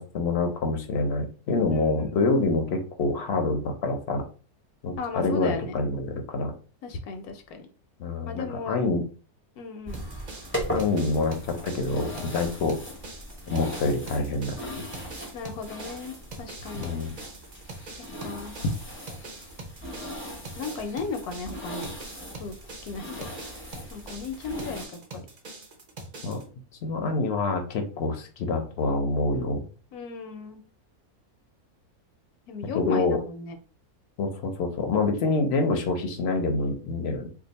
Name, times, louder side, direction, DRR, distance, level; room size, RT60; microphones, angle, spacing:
voice 1, 0.0-4.2 4.8-6.5 8.0-9.0 10.7-12.8 13.5-14.9 16.7-17.1 26.2-26.4 26.8-29.6 32.7-33.2 34.2-37.3, left 3 dB, 60° left, 5 dB, 0.7 m, -26 dB
voice 2, 1.7-2.2 5.0-5.8 6.8-7.7 8.3-8.8 9.6-10.0 15.3-16.9 18.2-18.7 20.6-21.9 22.4-23.3 23.9-25.3 29.9-30.6 32.5-33.5, left 4 dB, 80° left, 6 dB, 1.1 m, -35 dB
sound 1, 9.8-24.9, equal, 15° left, 0.4 m, -39 dB
sound 2, 9.9-26.4, right 2 dB, 50° right, 0.5 m, -43 dB
2.6 x 2.4 x 3.9 m, 0.38 s
omnidirectional pair, 1.6 m